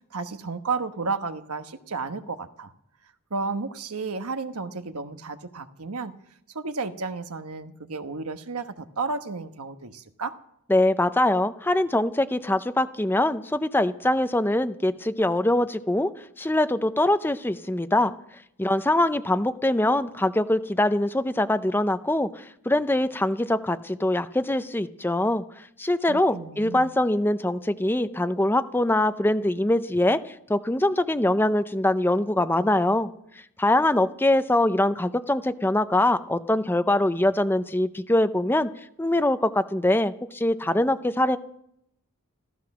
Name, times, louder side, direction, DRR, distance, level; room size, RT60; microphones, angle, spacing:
voice 1, 0.1-2.7 3.3-6.1 6.5-10.3 26.1-27.0, right 4 dB, 85° right, 8 dB, 1.2 m, -32 dB
voice 2, 10.7-16.1 16.4-18.1 18.6-25.4 25.8-33.1 33.6-38.7 39.0-41.4, left 1 dB, 10° left, 11 dB, 0.6 m, -23 dB
15.0 x 14.5 x 6.1 m, 0.75 s
head